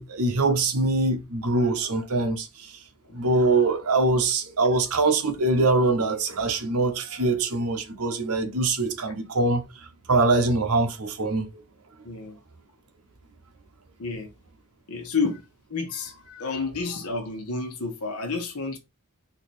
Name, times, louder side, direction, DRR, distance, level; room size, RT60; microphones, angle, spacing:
voice 1, 0.0-2.7 3.1-9.6 10.1-11.5, right 3 dB, 80° right, 1.1 m, -23 dB
voice 2, 3.1-3.5 12.0-12.4 14.0-14.3 14.9-15.4 15.7-18.8, left 4 dB, 80° left, 1.2 m, -30 dB
4.2 x 3.0 x 4.1 m
head